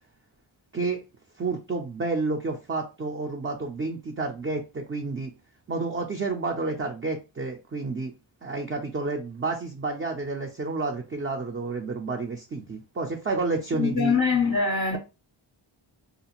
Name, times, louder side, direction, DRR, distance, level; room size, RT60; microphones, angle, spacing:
voice 1, 1.4-5.3 5.7-8.1 8.4-14.2, right 3 dB, 25° right, 0.4 m, -30 dB
voice 2, 13.8-15.0, left 5 dB, 25° left, 0.5 m, -23 dB
2.4 x 2.4 x 2.9 m
wide cardioid pair, 80°, 48 cm